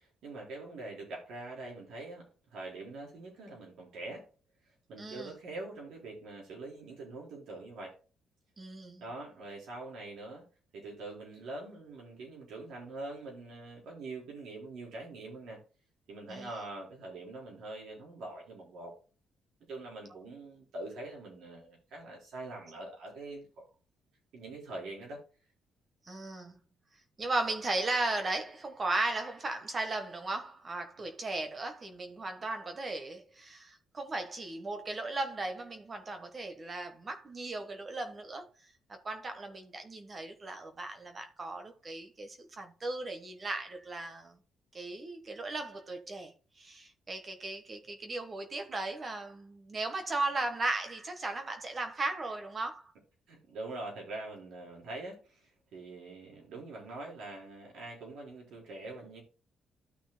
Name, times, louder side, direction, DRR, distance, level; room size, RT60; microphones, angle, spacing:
voice 1, 0.0-4.3 4.9-8.0 9.0-10.5 10.7-15.6 16.1-18.9 19.7-23.6 24.3-25.2 53.3-59.2, right 2 dB, 80° right, 4.2 m, -44 dB
voice 2, 5.0-5.3 8.6-9.0 16.3-16.5 26.1-26.6 27.2-38.5 38.9-44.4 44.7-52.9, right 2 dB, 35° right, 1.2 m, -36 dB
14.0 x 6.0 x 2.2 m
cardioid pair, 90°, 0 cm